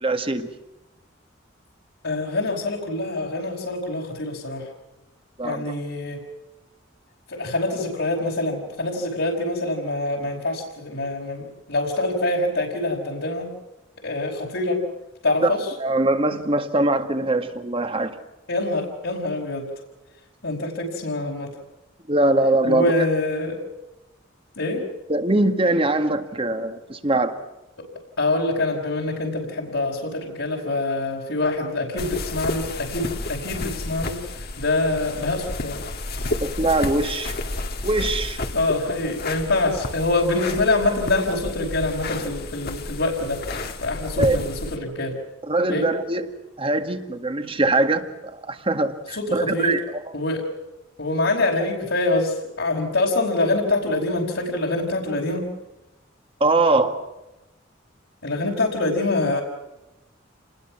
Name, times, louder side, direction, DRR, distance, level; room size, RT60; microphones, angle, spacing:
voice 1, 0.0-0.5 5.4-5.7 15.4-15.5 15.8-18.2 22.1-22.9 25.1-27.3 36.4-37.4 37.8-38.4 44.2-44.4 45.5-46.3 46.6-50.1 56.4-57.0, right 2 dB, 30° right, 7 dB, 2.0 m, -22 dB
voice 2, 2.0-4.7 5.4-6.2 7.3-13.5 14.0-14.8 15.2-15.7 18.5-19.7 20.4-21.5 22.6-23.6 24.6-24.8 28.2-35.8 36.2-36.3 38.5-43.4 43.8-45.2 45.7-45.9 49.1-49.8 50.1-50.4 51.0-55.5 58.2-59.4, left 2 dB, 75° left, -3 dB, 5.0 m, -25 dB
sound 1, 32.0-44.8, left 2 dB, 55° left, 2.2 m, -31 dB
29.0 x 20.5 x 6.0 m, 0.98 s
head